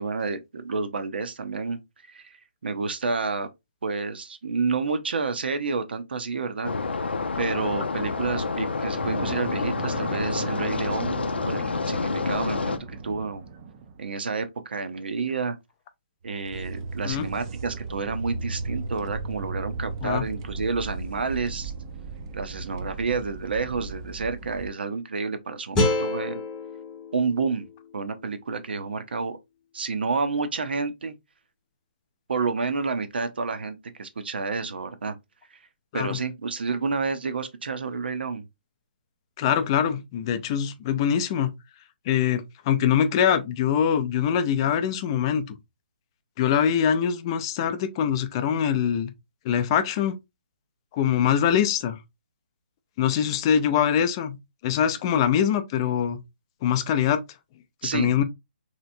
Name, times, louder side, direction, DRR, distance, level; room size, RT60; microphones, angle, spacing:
voice 1, 0.0-1.8 2.1-2.4 2.6-3.5 3.8-6.7 7.4-13.4 14.0-15.6 16.2-21.7 22.3-26.4 27.1-27.7 27.9-29.4 29.7-31.1 32.3-35.2 35.5-35.6 35.9-38.5 57.8-58.2, right 4 dB, 75° right, 0.7 m, -29 dB
sound 1, 6.6-12.8, left 4 dB, 90° left, 0.5 m, -28 dB
sound 2, 9.0-14.1 16.2-24.7, right 3 dB, 30° right, 0.5 m, -36 dB
sound 3, 25.8-28.9, left 2 dB, 10° left, 0.8 m, -29 dB
voice 2, 39.4-41.5 42.1-45.5 46.4-49.1 49.4-50.1 50.9-52.0 53.0-54.4 54.6-56.2 56.6-57.2 57.9-58.2, left 8 dB, 30° left, 0.4 m, -23 dB
3.2 x 2.9 x 2.6 m
hypercardioid pair, 155°, 6 cm